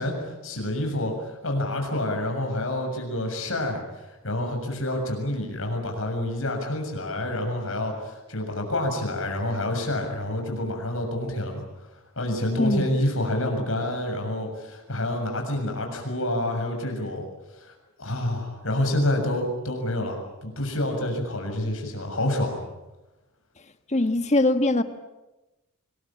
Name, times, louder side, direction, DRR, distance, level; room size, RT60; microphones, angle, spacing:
voice 1, 0.0-3.8 4.2-11.6 12.2-17.3 17.6-17.7 18.0-22.6, left 1 dB, 65° left, 3 dB, 7.0 m, -28 dB
voice 2, 23.9-24.8, left 2 dB, 30° left, 9 dB, 1.5 m, -21 dB
26.0 x 21.5 x 8.8 m, 1.0 s
head